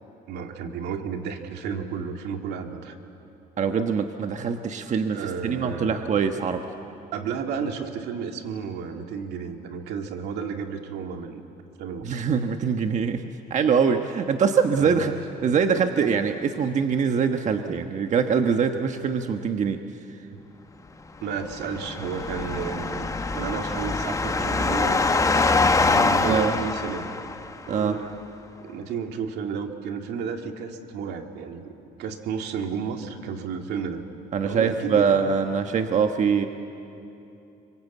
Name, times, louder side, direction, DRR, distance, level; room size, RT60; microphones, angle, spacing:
voice 1, 0.3-3.0 5.1-6.1 7.1-11.4 11.8-12.2 14.8-15.2 20.3-20.4 21.2-25.2 25.9-27.1 27.7-28.2 28.6-34.0 34.4-35.3, right 6 dB, 80° right, 4 dB, 2.2 m, -32 dB
voice 2, 3.6-6.6 12.0-13.2 13.5-15.1 15.4-19.8 26.3-26.5 27.7-28.0 34.3-36.5, right 6 dB, 45° right, 6 dB, 1.3 m, -23 dB
sound 1, 21.3-27.7, left 3 dB, 20° left, 1.1 m, -24 dB
26.5 x 24.5 x 8.4 m, 2.8 s
cardioid pair, 110°, 17 cm